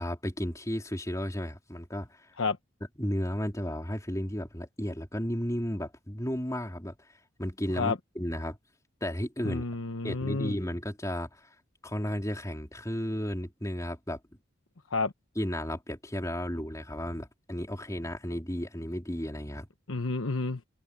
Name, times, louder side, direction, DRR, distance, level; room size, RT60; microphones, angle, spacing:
voice 1, 0.0-2.3 3.0-7.0 7.4-8.6 9.0-9.6 10.0-11.4 11.8-14.2 15.4-19.7, equal, 15° left, 3.5 m, -33 dB
voice 2, 9.4-10.5 14.9-15.1 19.9-20.6, left 3 dB, 75° left, 1.1 m, -30 dB
open air
head